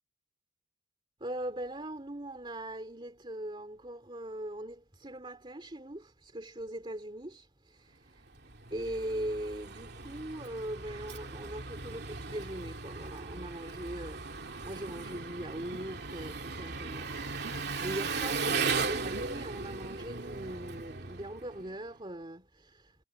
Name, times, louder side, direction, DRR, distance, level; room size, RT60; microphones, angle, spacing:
voice 1, 1.2-8.2 8.7-23.0, right 1 dB, 25° right, 2.5 m, -41 dB
Engine, 8.3-21.8, right 4 dB, 55° right, 2.6 m, -37 dB
head